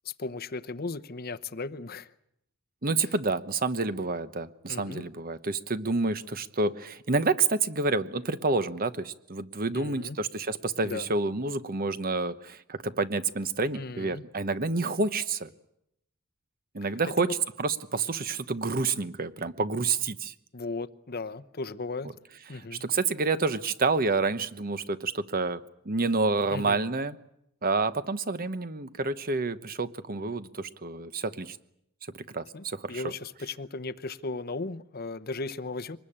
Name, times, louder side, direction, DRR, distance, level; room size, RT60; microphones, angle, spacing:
voice 1, 0.0-2.1 4.7-5.0 9.7-10.2 10.8-11.1 13.7-14.2 17.2-17.3 20.5-22.1 22.5-22.8 26.5-26.8 32.5-36.0, left 3 dB, 45° left, 0.9 m, -36 dB
voice 2, 2.8-15.5 16.7-17.3 17.6-20.3 22.5-25.6 25.8-27.2 27.6-31.6 32.1-33.1, right 3 dB, 40° right, 1.0 m, -29 dB
24.5 x 20.0 x 8.7 m
head